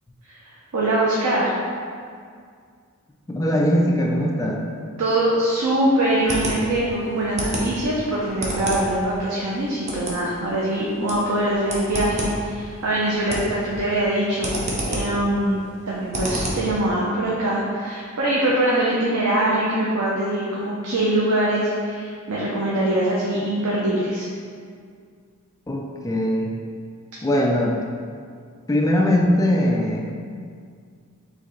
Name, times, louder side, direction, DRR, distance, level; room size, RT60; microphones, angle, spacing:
voice 1, 0.4-1.6 5.0-14.6 14.9-24.3, right 1 dB, 90° right, -5 dB, 0.6 m, -23 dB
voice 2, 3.3-4.6 25.7-26.5 27.2-27.8 28.7-30.1, equal, 15° left, 0 dB, 0.3 m, -20 dB
sound 1, 6.0-16.7, right 1 dB, 30° right, 0.6 m, -31 dB
4.7 x 3.2 x 3.1 m, 2.1 s
head